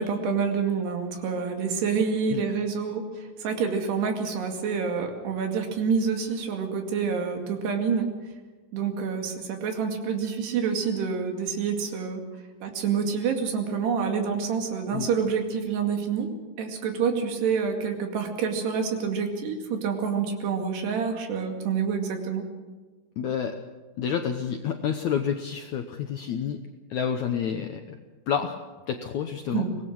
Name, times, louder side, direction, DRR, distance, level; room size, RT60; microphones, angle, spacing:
voice 1, 0.0-8.1 8.7-12.2 12.6-16.3 16.6-22.4 29.5-29.8, right 6 dB, 85° right, 3 dB, 4.4 m, -27 dB
voice 2, 23.2-23.5 24.0-26.6 26.9-28.0 28.3-28.6 28.9-29.7, left 8 dB, 75° left, 5 dB, 1.7 m, -29 dB
24.5 x 18.5 x 6.2 m, 1.3 s
omnidirectional pair, 4.6 m